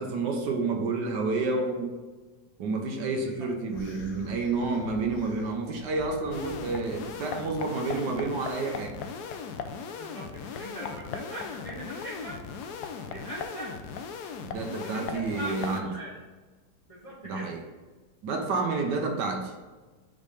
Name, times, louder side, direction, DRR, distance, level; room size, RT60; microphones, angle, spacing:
voice 1, 0.0-2.0 2.6-9.0 14.4-15.9 17.2-17.6 18.2-19.5, right 3 dB, 70° right, 3 dB, 1.4 m, -30 dB
sound 1, 3.7-7.1, left 1 dB, 55° left, 0.6 m, -46 dB
sound 2, 6.3-15.8, left 6 dB, 70° left, 1.0 m, -38 dB
voice 2, 10.0-12.4 13.1-13.8 14.8-16.1 16.9-17.5 18.6-18.9, right 1 dB, 25° left, -5 dB, 0.9 m, -40 dB
5.4 x 3.9 x 5.0 m, 1.3 s
omnidirectional pair, 2.0 m